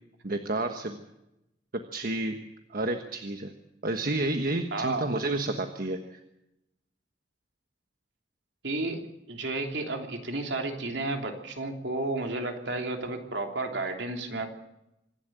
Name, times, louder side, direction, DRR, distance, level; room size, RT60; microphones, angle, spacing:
voice 1, 0.2-1.0 1.9-2.4 2.7-3.5 3.8-6.2, right 2 dB, 50° right, 6 dB, 1.3 m, -30 dB
voice 2, 4.7-5.1 8.6-14.5, right 2 dB, 65° right, 3 dB, 3.2 m, -32 dB
25.5 x 11.5 x 9.2 m, 0.88 s
head